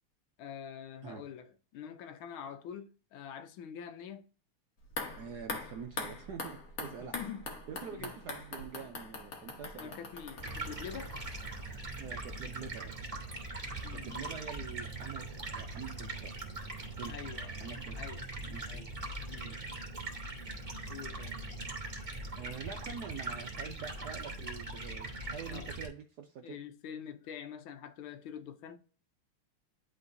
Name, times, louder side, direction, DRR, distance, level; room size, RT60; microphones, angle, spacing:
voice 1, 0.4-4.3 7.0-7.4 7.9-8.1 9.8-11.1 13.8-14.5 17.0-17.5 18.0-18.3 18.6-18.9 19.3-19.6 20.9-21.4 25.5-25.7 26.4-28.8, left 8 dB, 75° left, 1.4 m, -45 dB
sound 1, 4.8-11.9 12.2-12.3, left 3 dB, 50° left, 1.3 m, -43 dB
voice 2, 5.2-7.1 7.7-10.0 12.0-13.2 13.9-16.3 17.0-17.1 17.6-18.0 18.4-18.7 19.4-19.6 22.3-26.6, right 7 dB, 70° right, 0.9 m, -45 dB
Stream, 10.4-25.9, right 2 dB, 15° right, 2.1 m, -41 dB
10.5 x 3.8 x 2.6 m
omnidirectional pair, 2.3 m